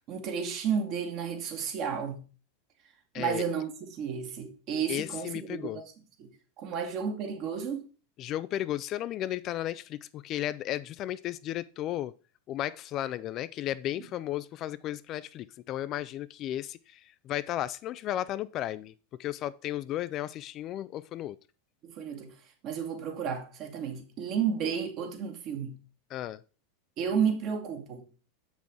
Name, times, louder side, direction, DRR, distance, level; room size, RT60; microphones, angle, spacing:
voice 1, 0.1-2.2 3.1-5.8 6.2-7.9 14.0-14.1 21.8-22.3 22.6-25.8 27.0-28.1, right 7 dB, 45° right, 1.7 m, -32 dB
voice 2, 4.9-5.8 8.2-12.1 12.5-18.9 19.2-21.4 26.1-26.4, left 13 dB, 40° left, 0.4 m, -34 dB
7.1 x 6.1 x 3.7 m
figure-of-eight pair, 90°, 0 cm